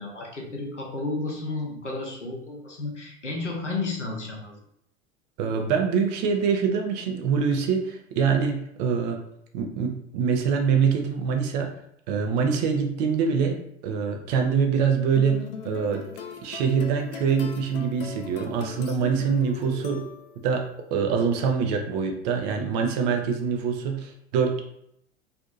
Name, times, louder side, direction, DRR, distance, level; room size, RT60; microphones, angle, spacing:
voice 1, 0.0-4.6, left 3 dB, 90° left, -1 dB, 0.7 m, -32 dB
voice 2, 5.4-9.2 9.5-11.7 12.1-16.0 16.4-20.1 20.4-20.6 20.9-24.6, right 6 dB, 40° right, 4 dB, 0.4 m, -24 dB
sound 1, 15.2-20.5, left 6 dB, 55° left, 0.4 m, -39 dB
2.6 x 2.5 x 2.4 m, 0.75 s
figure-of-eight pair, 80°, 35 cm